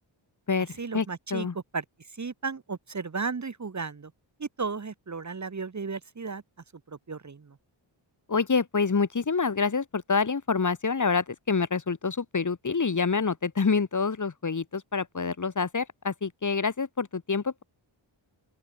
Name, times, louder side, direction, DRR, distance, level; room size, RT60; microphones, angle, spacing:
voice 1, 0.8-1.5 1.7-1.8 2.2-4.1 4.4-6.4 6.9-7.6, right 4 dB, 35° right, 1.7 m, -34 dB
voice 2, 8.3-17.6, left 5 dB, 40° left, 2.1 m, -27 dB
open air
wide cardioid pair, 90°, 48 cm